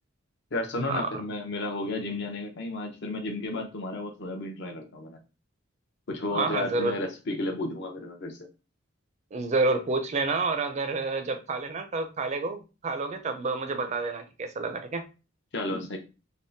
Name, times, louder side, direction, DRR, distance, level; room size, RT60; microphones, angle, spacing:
voice 1, 0.5-5.2 6.1-8.4 15.5-16.0, left 2 dB, 60° left, 0.7 m, -32 dB
voice 2, 6.3-6.9 9.3-15.1, right 3 dB, 35° right, 0.4 m, -29 dB
3.4 x 2.1 x 2.6 m
head